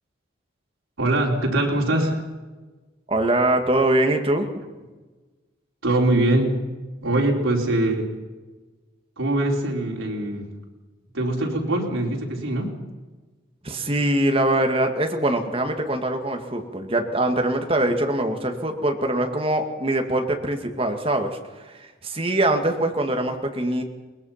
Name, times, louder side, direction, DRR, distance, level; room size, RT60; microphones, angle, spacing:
voice 1, 1.0-2.2 5.8-6.6 7.0-8.1 9.2-10.5 11.1-12.7, right 1 dB, 85° right, 0 dB, 4.3 m, -22 dB
voice 2, 3.1-4.5 13.6-21.4 21.6-23.8, right 1 dB, 30° right, 4 dB, 2.0 m, -23 dB
22.0 x 20.0 x 5.8 m, 1.3 s
head